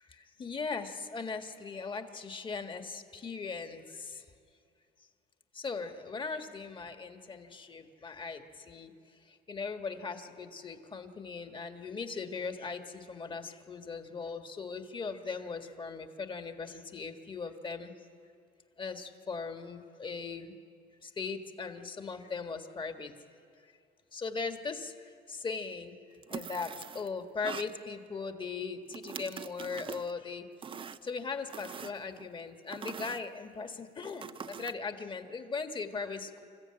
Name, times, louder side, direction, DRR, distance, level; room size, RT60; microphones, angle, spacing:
voice 1, 0.4-4.2 5.5-8.9 9.5-17.9 18.8-20.5 21.2-23.1 24.1-24.9 25.3-25.9 26.3-30.5 31.0-36.4, left 4 dB, 30° left, 6 dB, 1.6 m, -39 dB
sound 1, 26.2-27.1 27.4-27.7 28.9-30.1 30.6-31.1 31.5-32.3 32.7-33.2 34.0-34.7, right 6 dB, 30° right, 0.6 m, -43 dB
27.0 x 14.5 x 8.8 m, 2.4 s
cardioid pair, 110°, 17 cm